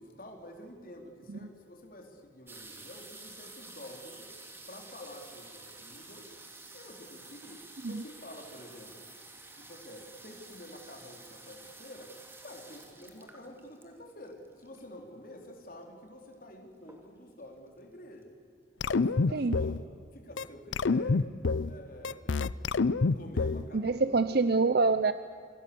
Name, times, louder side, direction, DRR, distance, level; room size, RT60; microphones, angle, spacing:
voice 1, 0.0-4.3 4.7-6.3 6.7-9.1 9.6-18.3 18.8-19.8 20.1-21.3 21.6-22.4 23.1-24.7, left 1 dB, 45° left, 2 dB, 3.9 m, -49 dB
sound 1, 2.5-15.0 15.8-15.9 16.1-16.5 16.8-17.4 17.9-18.0 18.2-18.3, right 2 dB, 10° right, 2.7 m, -50 dB
sound 2, 18.8-19.8 20.4-20.5 20.7-21.7 22.0-23.7, left 4 dB, 70° left, 0.6 m, -27 dB
voice 2, 23.7-25.1, right 3 dB, 55° right, 12 dB, 0.7 m, -26 dB
28.0 x 25.5 x 7.0 m, 2.3 s
head